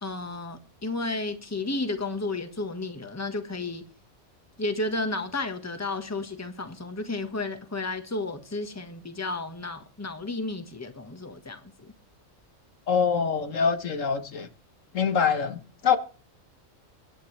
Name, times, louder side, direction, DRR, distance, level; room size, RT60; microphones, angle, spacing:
voice 1, 0.0-3.9 4.6-11.9, left 2 dB, 15° left, 1.4 m, -32 dB
voice 2, 12.9-14.5 14.9-16.0, left 6 dB, 75° left, 1.6 m, -24 dB
23.5 x 10.5 x 3.3 m
omnidirectional pair, 1.3 m